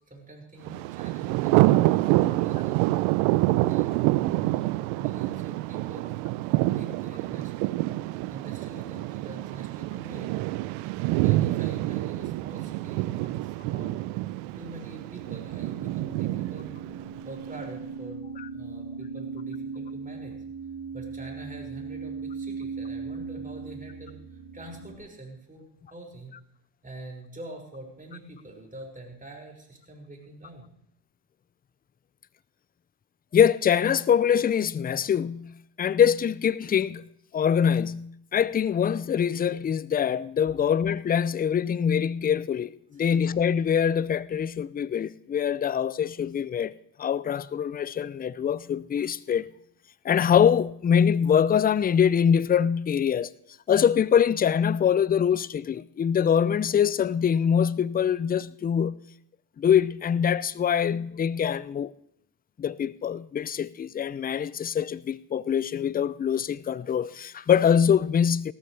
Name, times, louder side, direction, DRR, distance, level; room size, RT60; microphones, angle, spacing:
voice 1, 0.0-2.9 3.5-6.2 6.7-7.5 8.2-10.3 11.2-14.1 14.4-16.8 17.2-20.4 20.9-26.3 26.8-30.7 43.0-43.1, right 2 dB, 15° right, 5.8 m, -45 dB
Thunder, 0.7-17.6, right 18 dB, 75° right, 0.6 m, -27 dB
pink noise distortion, 14.8-25.0, right 5 dB, 60° right, 3.6 m, -38 dB
voice 2, 33.3-35.5 35.8-37.0 37.3-49.5 50.0-53.3 53.7-59.0 59.6-61.9 62.6-68.5, left 8 dB, 20° left, 0.4 m, -24 dB
18.0 x 13.5 x 3.3 m
supercardioid pair, 70°, 49 cm